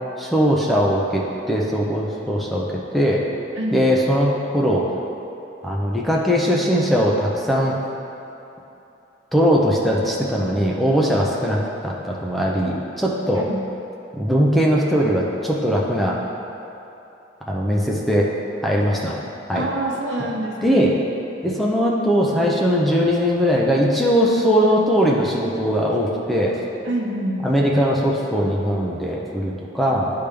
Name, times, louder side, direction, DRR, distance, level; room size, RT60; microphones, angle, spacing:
voice 1, 0.2-2.7 2.9-3.2 3.7-4.8 5.6-7.8 9.3-13.5 14.1-16.2 17.5-18.3 18.6-19.2 19.5-19.7 20.6-20.9 21.4-26.6 27.4-30.1, equal, ahead, -4 dB, 0.5 m, -20 dB
voice 2, 19.5-20.9 26.8-27.4, right 1 dB, 80° right, 0 dB, 0.8 m, -26 dB
10.0 x 3.5 x 3.3 m, 2.9 s
head